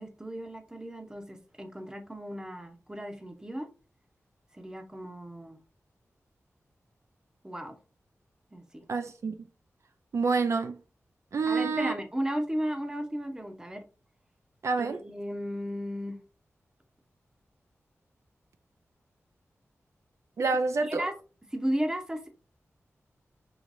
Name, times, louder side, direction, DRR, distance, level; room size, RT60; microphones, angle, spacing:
voice 1, 0.0-3.7 4.5-5.6 7.4-7.7 8.5-8.8 11.5-13.8 14.8-16.2 20.9-21.1 21.5-22.3, equal, 15° right, 0.8 m, -34 dB
voice 2, 8.9-9.3 10.1-10.7 11.3-11.9 14.6-15.0 20.4-21.0, right 4 dB, 65° right, 0.4 m, -27 dB
4.8 x 3.1 x 2.5 m
wide cardioid pair, 110°, 5 cm